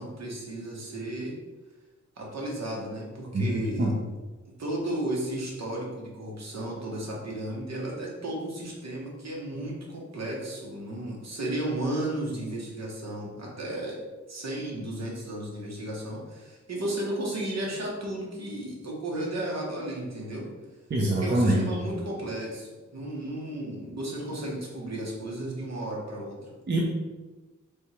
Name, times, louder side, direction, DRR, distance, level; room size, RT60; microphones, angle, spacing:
voice 1, 0.0-1.3 2.2-3.9 4.6-14.0 14.3-20.5 21.2-26.5, right 1 dB, 60° right, -2 dB, 1.1 m, -34 dB
voice 2, 3.3-3.9 20.9-21.7 26.7-26.9, right 1 dB, 35° right, -3 dB, 0.5 m, -24 dB
3.4 x 2.8 x 4.3 m, 1.2 s
wide cardioid pair, 155°, 30 cm